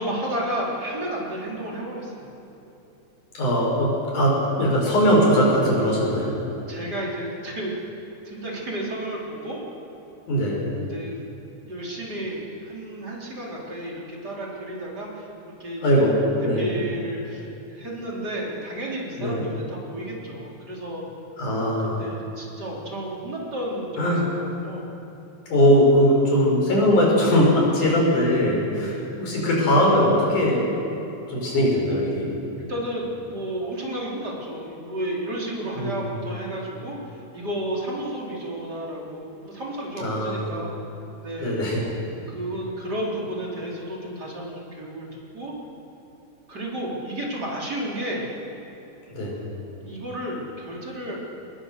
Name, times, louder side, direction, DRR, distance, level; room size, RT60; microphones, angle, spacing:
voice 1, 0.0-2.3 6.7-7.9 8.2-9.6 10.9-11.2 11.6-15.3 15.6-16.2 16.5-21.0 21.8-24.2 24.6-24.9 28.8-29.1 32.6-40.7 41.2-41.9 42.3-45.5 46.5-48.2 49.8-51.2, right 1 dB, 30° right, -3 dB, 4.3 m, -32 dB
voice 2, 3.3-6.3 10.3-10.7 15.8-16.2 16.4-16.7 19.2-19.4 21.4-22.0 24.0-24.3 25.5-30.7 31.3-32.3 35.8-36.2 40.0-40.5 41.4-41.8 49.1-49.4, equal, 85° left, -2 dB, 7.0 m, -20 dB
24.0 x 20.5 x 6.8 m, 3.0 s
omnidirectional pair, 3.5 m